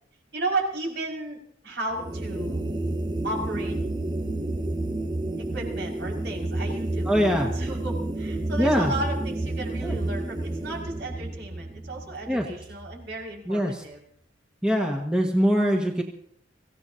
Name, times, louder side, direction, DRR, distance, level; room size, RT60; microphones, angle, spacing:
voice 1, 0.3-1.4 1.6-2.6 3.2-3.8 5.4-7.2 7.5-14.0, right 2 dB, 60° right, 0 dB, 5.7 m, -33 dB
sound 1, 1.9-13.3, right 2 dB, 20° right, 0.7 m, -30 dB
voice 2, 7.1-7.5 8.6-8.9 9.8-10.0 12.3-12.4 13.5-13.8 14.6-16.0, equal, 5° right, 0 dB, 1.6 m, -23 dB
25.5 x 16.5 x 2.8 m, 0.66 s
head